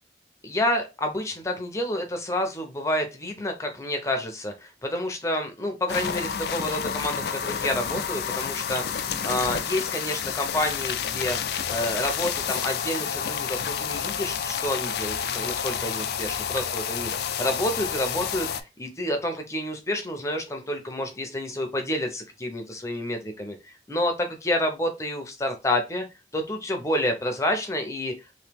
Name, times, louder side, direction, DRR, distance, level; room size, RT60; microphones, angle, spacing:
voice 1, 0.4-11.4 11.7-26.0 26.3-28.1, left 1 dB, 15° left, 4 dB, 0.6 m, -29 dB
sound 1, 5.9-18.6, left 7 dB, 65° left, 0.3 m, -29 dB
3.0 x 2.7 x 3.3 m, 0.26 s
head